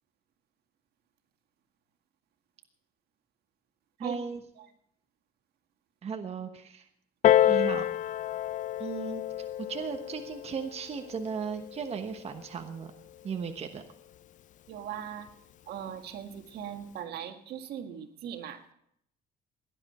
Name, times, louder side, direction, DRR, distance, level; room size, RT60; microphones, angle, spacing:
voice 1, 4.0-4.4 6.0-6.9 7.4-7.8 8.8-12.9 13.2-13.8, right 6 dB, 40° right, 6 dB, 1.2 m, -36 dB
Piano, 7.2-12.4 13.3-13.4, left 11 dB, 50° left, 0.4 m, -29 dB
voice 2, 14.7-15.3 15.7-18.6, right 9 dB, 70° right, 6 dB, 1.8 m, -39 dB
17.5 x 10.5 x 4.3 m, 0.69 s
cardioid pair, 110°, 17 cm